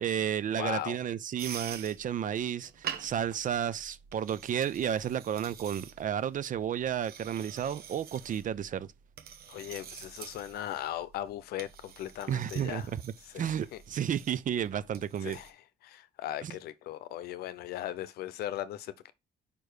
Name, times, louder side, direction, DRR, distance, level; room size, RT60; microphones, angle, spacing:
voice 1, 0.0-8.9 12.3-15.4 16.4-16.6, right 9 dB, 55° right, 0.6 m, -32 dB
voice 2, 0.6-1.0 9.5-12.9 13.3-13.8 15.2-15.5 15.8-19.1, left 12 dB, 80° left, 0.7 m, -38 dB
scraping wooden spoon against linoleum counter, 1.4-15.5, right 8 dB, 75° right, 1.0 m, -47 dB
5.2 x 4.6 x 5.0 m
supercardioid pair, 70°, 16 cm